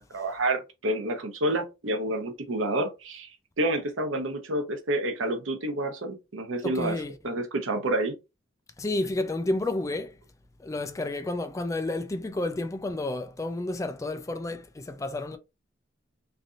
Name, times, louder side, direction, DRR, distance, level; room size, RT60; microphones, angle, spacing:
voice 1, 0.1-3.3 3.6-8.2, right 1 dB, 85° right, 0.8 m, -29 dB
voice 2, 6.6-7.1 8.8-10.2 10.6-15.4, left 2 dB, 15° left, 0.3 m, -31 dB
3.2 x 2.6 x 2.5 m
head